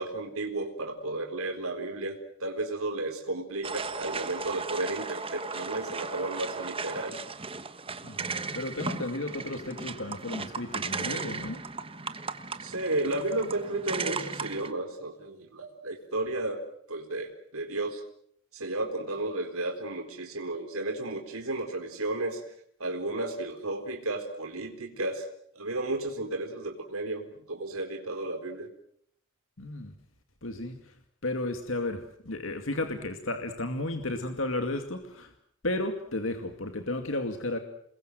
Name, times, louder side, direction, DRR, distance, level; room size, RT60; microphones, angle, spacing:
voice 1, 0.0-7.2 12.6-16.6 16.9-18.0 18.5-22.4 22.8-25.3 25.5-28.7, right 2 dB, 80° right, 3 dB, 4.1 m, -33 dB
sound 1, 3.6-14.7, right 4 dB, 25° right, 1.3 m, -36 dB
voice 2, 8.0-11.6 29.6-30.0 30.4-30.9 31.2-35.3 35.6-37.6, left 2 dB, 65° left, 6 dB, 2.3 m, -33 dB
28.5 x 21.5 x 7.8 m, 0.69 s
head